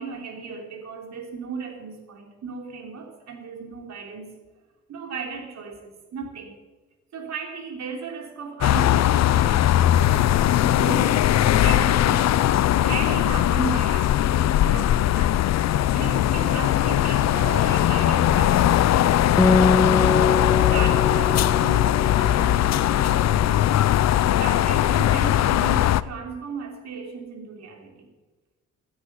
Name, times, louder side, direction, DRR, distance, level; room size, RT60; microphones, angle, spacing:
voice 1, 0.0-4.4 4.9-6.5 7.1-12.4 12.8-15.4 15.9-19.4 20.0-20.3 20.7-23.6 23.9-24.0 24.4-28.1, right 5 dB, 60° right, 3 dB, 3.7 m, -36 dB
sound 1, 8.6-26.0, left 12 dB, 60° left, 0.6 m, -20 dB
Acoustic guitar, 19.4-23.1, left 3 dB, 10° left, 0.4 m, -23 dB
16.5 x 10.0 x 7.3 m, 1.2 s
cardioid pair, 90°, 30 cm